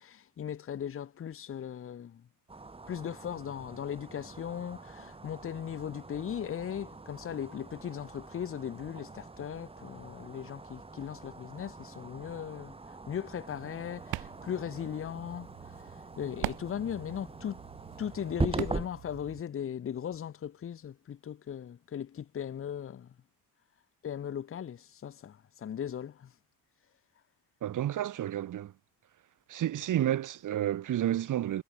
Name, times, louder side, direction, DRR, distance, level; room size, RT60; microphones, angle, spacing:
voice 1, 0.0-2.2 2.9-12.8 13.1-15.5 16.2-17.6 18.0-23.1 24.0-26.3, left 9 dB, 35° left, 1.2 m, -38 dB
sound 1, 2.5-18.9, right 3 dB, 15° right, 2.2 m, -42 dB
sound 2, 13.5-19.4, right 18 dB, 80° right, 1.3 m, -43 dB
voice 2, 27.6-28.7 29.5-31.6, right 12 dB, 55° right, 1.9 m, -30 dB
cardioid pair, 125°, 36 cm